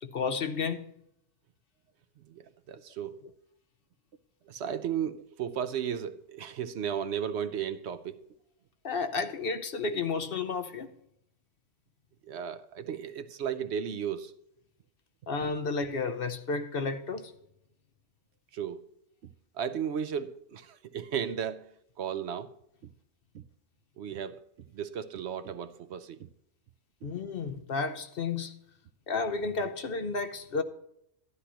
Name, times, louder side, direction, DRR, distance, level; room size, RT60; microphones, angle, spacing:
voice 1, 0.0-0.9 8.8-10.9 15.3-17.3 27.0-28.6 29.1-30.6, left 4 dB, 60° left, 0.9 m, -32 dB
voice 2, 2.3-3.2 4.5-8.2 12.2-14.3 18.5-18.8 19.5-21.7 22.0-22.5 23.3-23.4 24.0-24.4 24.7-26.3, right 8 dB, 70° right, 0.9 m, -35 dB
12.5 x 11.5 x 2.9 m
omnidirectional pair, 1.2 m